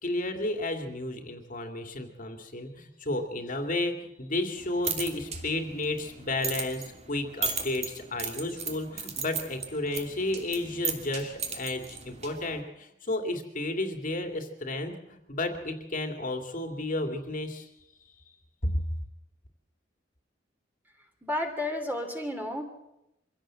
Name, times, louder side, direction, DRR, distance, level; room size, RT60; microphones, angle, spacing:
voice 1, 0.0-17.7, left 2 dB, 45° left, 5 dB, 2.6 m, -32 dB
sound 1, 4.6-12.6, right 5 dB, 35° right, 2.9 m, -37 dB
voice 2, 21.2-22.6, left 1 dB, 10° right, 4 dB, 3.2 m, -31 dB
25.0 x 16.5 x 7.7 m, 0.89 s
head